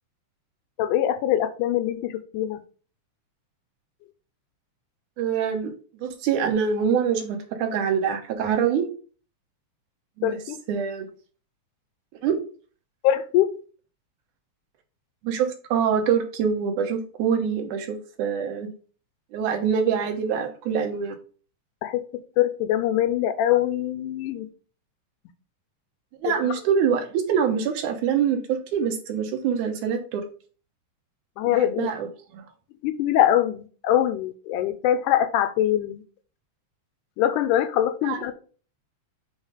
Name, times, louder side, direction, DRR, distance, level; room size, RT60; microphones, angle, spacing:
voice 1, 0.8-2.6 10.2-10.6 13.0-13.6 21.8-22.0 22.4-24.5 26.3-26.5 31.4-31.9 32.8-36.0 37.2-38.3, left 11 dB, 85° left, 12 dB, 2.1 m, -23 dB
voice 2, 5.2-5.7 6.0-8.9 10.2-10.4 10.7-11.1 12.2-12.4 15.2-18.7 19.3-21.2 26.2-30.2 31.5-32.1 32.3-32.4 38.0-38.2, right 7 dB, 75° right, 4 dB, 2.5 m, -25 dB
7.3 x 3.2 x 4.9 m, 0.40 s
omnidirectional pair, 3.6 m